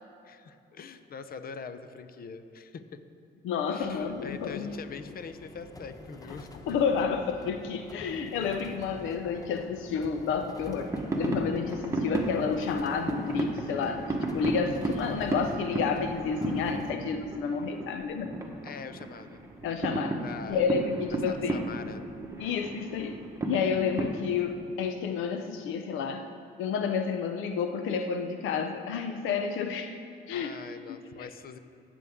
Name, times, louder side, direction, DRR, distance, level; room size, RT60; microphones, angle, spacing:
voice 1, 0.2-3.0 3.7-6.6 18.6-19.4 20.2-20.6 21.3-22.0 30.3-31.6, left 6 dB, 50° left, 10 dB, 0.7 m, -43 dB
voice 2, 3.4-4.8 6.7-14.1 14.3-18.4 19.6-20.2 20.5-21.7 22.4-26.3 26.6-30.0 30.3-30.6 30.9-31.3, left 6 dB, 90° left, 7 dB, 0.6 m, -30 dB
sound 1, 3.8-16.9, left 1 dB, 20° left, 0.8 m, -47 dB
sound 2, 10.6-24.2, right 2 dB, 15° right, 1.2 m, -34 dB
19.0 x 7.1 x 3.6 m, 2.7 s
cardioid pair, 90°, 20 cm